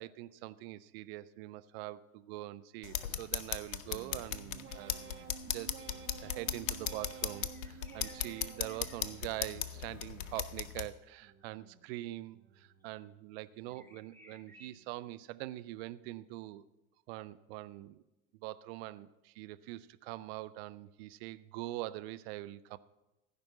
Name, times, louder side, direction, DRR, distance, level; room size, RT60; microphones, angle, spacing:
voice 1, 0.0-5.0 5.4-5.8 6.2-16.7 17.1-18.0 18.3-22.8, right 16 dB, 45° right, 14 dB, 0.6 m, -44 dB
sound 1, 2.8-10.9, left 10 dB, 65° left, 0.8 m, -38 dB
sound 2, 3.9-9.7 10.1-10.8 11.2-11.9 12.3-12.9 13.4-14.0 14.5-15.0, right 8 dB, 30° right, 1.2 m, -53 dB
sound 3, 7.5-9.8 12.8-12.9 13.7-14.7, equal, 5° left, 1.6 m, -59 dB
15.0 x 5.2 x 7.5 m, 0.96 s
figure-of-eight pair, 80°, 42 cm